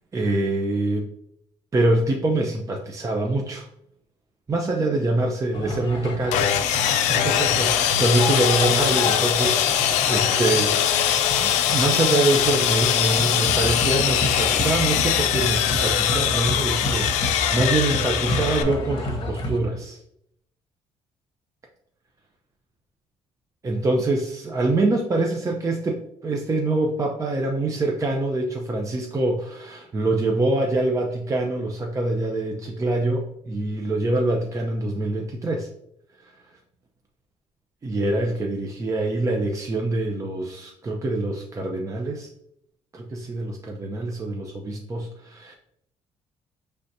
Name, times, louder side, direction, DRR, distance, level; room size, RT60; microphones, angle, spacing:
voice 1, 0.1-1.1 1.7-3.7 4.5-20.0 23.6-35.7 36.2-36.4 37.8-42.3 42.9-45.5, right 2 dB, 25° right, 1 dB, 0.6 m, -25 dB
sound 1, 5.5-19.6, left 1 dB, 45° left, 0.9 m, -30 dB
Sawing, 6.3-18.6, left 10 dB, 85° left, 0.4 m, -22 dB
5.1 x 3.3 x 2.7 m, 0.74 s
cardioid pair, 90°, 12 cm